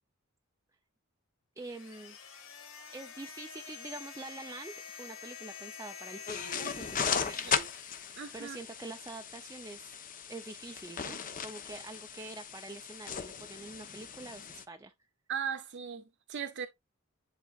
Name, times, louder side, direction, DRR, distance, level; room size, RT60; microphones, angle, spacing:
sound 1, 1.6-8.9, left 6 dB, 75° left, 1.6 m, -47 dB
voice 1, 1.6-2.2 2.9-7.5 8.3-9.9 10.3-14.9, right 2 dB, 15° right, 0.5 m, -46 dB
sound 2, 6.3-14.6, left 6 dB, 40° left, 0.8 m, -37 dB
voice 2, 8.2-8.6 15.3-16.7, right 7 dB, 60° right, 0.6 m, -38 dB
10.5 x 3.8 x 2.4 m
head